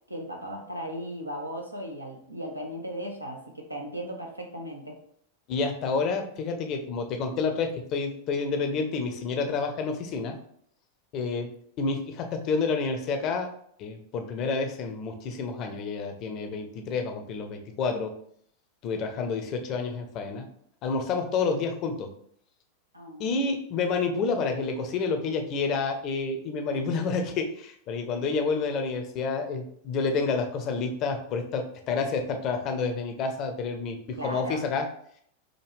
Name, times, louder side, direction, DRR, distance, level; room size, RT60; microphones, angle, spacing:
voice 1, 0.1-5.0 22.9-23.3 26.7-27.0 34.2-34.7, equal, 85° right, 1 dB, 0.8 m, -37 dB
voice 2, 5.5-10.4 11.1-11.5 11.8-13.5 13.8-18.1 18.8-20.4 20.8-22.1 23.2-34.9, left 4 dB, 35° left, 5 dB, 0.6 m, -29 dB
5.0 x 2.3 x 3.2 m, 0.65 s
figure-of-eight pair, 90°, 0 cm